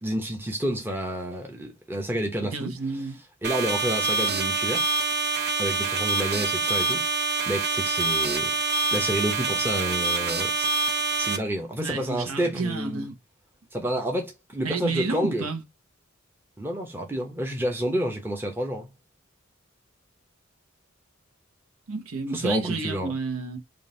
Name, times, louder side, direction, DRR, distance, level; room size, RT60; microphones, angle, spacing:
voice 1, 0.0-2.7 3.4-4.9 5.6-7.0 7.5-8.5 8.9-10.7 11.2-13.1 13.7-15.5 16.6-18.9 22.3-23.1, equal, 10° right, 0.7 m, -29 dB
voice 2, 2.4-3.2 11.8-13.1 14.6-15.6 21.9-23.6, right 4 dB, 80° right, 0.9 m, -30 dB
sound 1, 3.4-11.4, right 3 dB, 50° right, 0.7 m, -26 dB
3.7 x 2.5 x 3.7 m
head